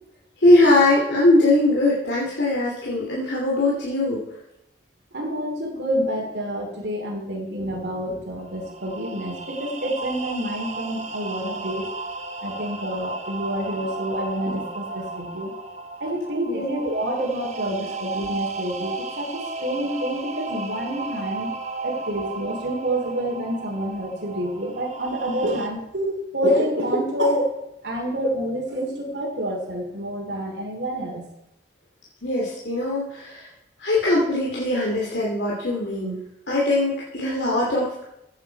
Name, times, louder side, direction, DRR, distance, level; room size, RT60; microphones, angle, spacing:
voice 1, 0.4-4.2 16.5-16.6 32.2-33.5 33.8-36.2 36.5-38.0, left 2 dB, 75° left, -4 dB, 2.7 m, -21 dB
voice 2, 5.1-11.9 12.4-15.5 16.0-21.5 21.8-27.5 27.8-31.3, equal, 75° right, 0 dB, 2.7 m, -27 dB
sound 1, 8.4-25.7, right 3 dB, 40° right, 1.1 m, -34 dB
15.5 x 8.8 x 4.6 m, 0.87 s
head